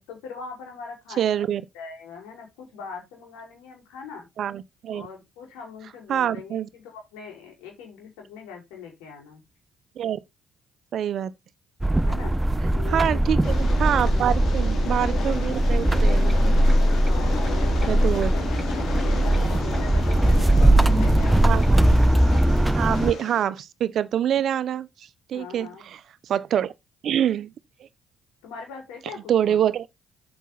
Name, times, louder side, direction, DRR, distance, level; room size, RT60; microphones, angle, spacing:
voice 1, 0.1-4.3 4.9-9.4 12.0-12.3 12.7-13.2 14.0-14.6 16.9-17.9 18.3-18.4 19.0-21.7 25.3-25.8 28.4-29.6, left 5 dB, 85° left, 5.2 m, -41 dB
voice 2, 1.2-1.6 4.4-5.1 6.1-6.7 10.0-10.2 10.9-11.3 12.9-16.4 17.9-18.3 21.4-21.8 22.7-26.7 27.0-27.5 29.3-29.9, right 10 dB, 65° right, 0.9 m, -25 dB
sound 1, 11.8-23.1, right 1 dB, 15° right, 0.8 m, -20 dB
Train, 13.4-23.4, left 6 dB, 65° left, 3.6 m, -34 dB
8.4 x 7.1 x 4.1 m
hypercardioid pair, 55°, 0 cm